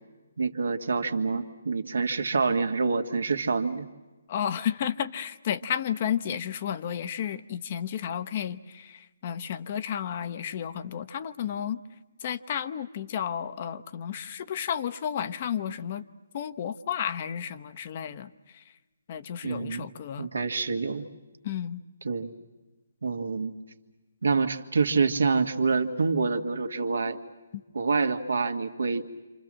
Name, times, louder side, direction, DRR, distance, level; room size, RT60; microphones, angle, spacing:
voice 1, 0.4-3.9 19.4-19.9 20.2-21.1 22.0-22.3 23.0-23.5 24.2-27.2 27.7-29.0, right 4 dB, 75° right, 6 dB, 1.9 m, -27 dB
voice 2, 4.3-11.8 12.2-16.1 16.3-18.6 19.1-20.3 21.4-21.8 27.5-27.6, left 9 dB, 40° left, 11 dB, 1.0 m, -32 dB
27.5 x 27.0 x 7.6 m, 1.2 s
figure-of-eight pair, 145°, 0 cm